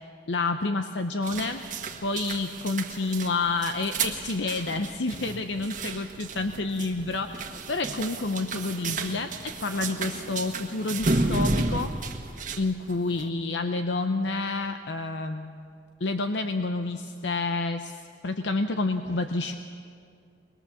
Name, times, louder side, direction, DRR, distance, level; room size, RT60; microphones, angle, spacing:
voice 1, 0.3-1.6 2.0-11.9 12.6-15.7 16.0-19.5, left 3 dB, 75° left, 7 dB, 0.8 m, -29 dB
sound 1, 1.2-13.3, right 3 dB, 45° right, 1.4 m, -32 dB
22.0 x 21.0 x 7.2 m, 2.3 s
head